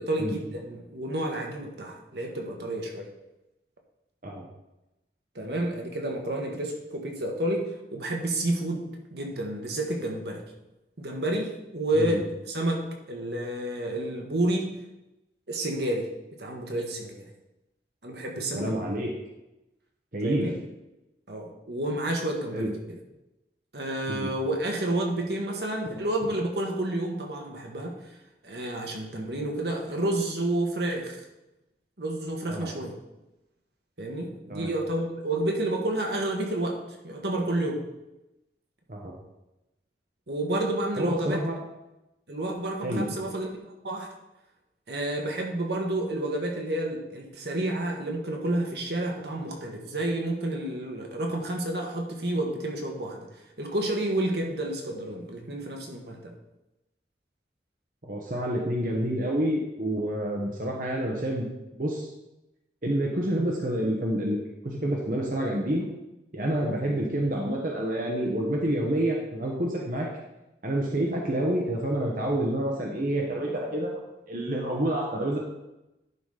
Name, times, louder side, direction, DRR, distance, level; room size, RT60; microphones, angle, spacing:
voice 1, 0.1-3.1 5.3-10.4 11.0-14.7 15.5-16.1 16.4-17.1 18.0-18.9 20.2-20.5 21.3-23.0 23.7-28.0 28.4-31.2 32.0-33.0 34.0-37.8 40.3-41.4 42.3-43.5 43.8-44.1 44.9-53.3 53.6-56.3, right 1 dB, 70° right, 1 dB, 1.4 m, -30 dB
voice 2, 18.5-19.1 20.1-20.5 22.5-22.7 24.1-24.3 32.5-32.7 34.5-34.7 38.9-39.1 41.0-41.6 42.8-43.1 58.0-61.5 61.7-62.1 62.8-64.4 64.6-65.8 66.3-70.1 70.6-74.0 74.3-75.4, right 1 dB, 50° right, -1 dB, 1.1 m, -28 dB
11.0 x 4.1 x 5.0 m, 0.95 s
head